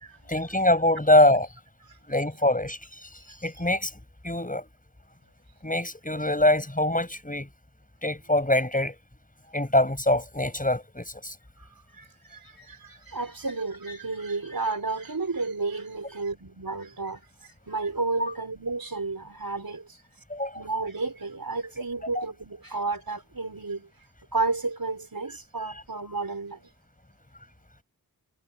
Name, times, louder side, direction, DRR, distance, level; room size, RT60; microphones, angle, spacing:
voice 1, 0.3-1.5 2.1-4.0 4.2-4.7 5.6-7.5 8.0-9.0 9.5-11.4 18.2-18.3 20.3-20.6 22.2-22.3, left 1 dB, 20° left, 6.0 m, -24 dB
voice 2, 3.3-3.6 11.6-20.0 20.5-23.9 24.3-26.7, right 3 dB, 65° right, 5.3 m, -32 dB
wide cardioid pair, 55°, 37 cm